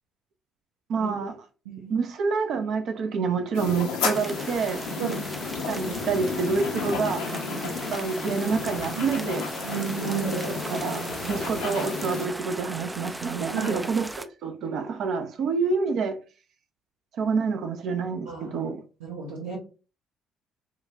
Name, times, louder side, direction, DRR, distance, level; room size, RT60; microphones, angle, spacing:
voice 1, 0.9-1.3 1.9-4.8 5.7-7.2 7.9-9.4 10.1-10.4 10.7-16.2 17.2-18.8, right 5 dB, 55° right, 0.6 m, -27 dB
voice 2, 1.6-2.0 5.0-5.3 8.9-9.2 9.6-10.6 13.5-13.8 18.2-18.6 19.0-19.6, right 6 dB, 75° right, 1.2 m, -32 dB
sound 1, 3.5-12.3, left 4 dB, 70° left, 0.8 m, -32 dB
sound 2, 4.1-14.3, right 1 dB, 10° right, 0.4 m, -38 dB
5.5 x 2.3 x 2.6 m
figure-of-eight pair, 45°, 0 cm